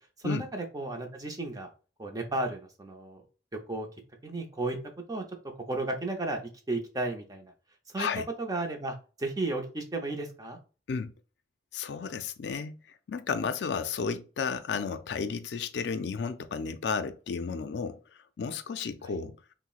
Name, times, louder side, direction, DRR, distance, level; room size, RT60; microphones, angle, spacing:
voice 1, 0.2-1.7 2.0-3.2 3.5-3.9 4.2-4.8 5.1-5.2 5.7-7.5 7.9-8.1 8.4-10.6 19.0-19.2, right 2 dB, 20° right, 0.7 m, -34 dB
voice 2, 11.7-12.8 13.1-18.0 18.4-19.4, left 5 dB, 75° left, 0.4 m, -32 dB
5.7 x 2.1 x 2.4 m
head